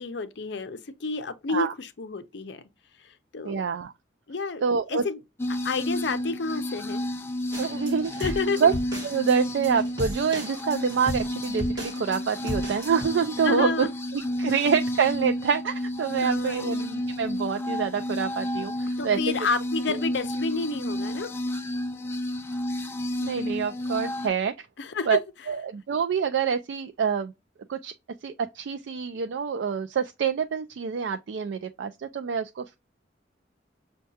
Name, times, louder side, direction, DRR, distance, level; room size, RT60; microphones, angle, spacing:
voice 1, 0.0-2.6 3.0-3.6 4.3-4.6 4.9-5.2 5.5-7.0 8.2-8.6 13.4-13.9 16.2-16.7 19.0-21.3 24.8-25.2, left 4 dB, 65° left, 0.5 m, -30 dB
voice 2, 3.4-3.9 4.6-5.0 7.6-8.7 9.0-13.9 14.1-19.2 19.9-20.0 23.2-24.7 25.1-25.2 25.5-27.3 27.7-27.9 28.2-32.8, right 6 dB, 70° right, 0.3 m, -26 dB
sound 1, 5.4-24.3, left 1 dB, 10° left, 0.4 m, -31 dB
sound 2, 7.5-13.0, left 1 dB, 20° right, 1.6 m, -36 dB
6.3 x 2.2 x 2.6 m
head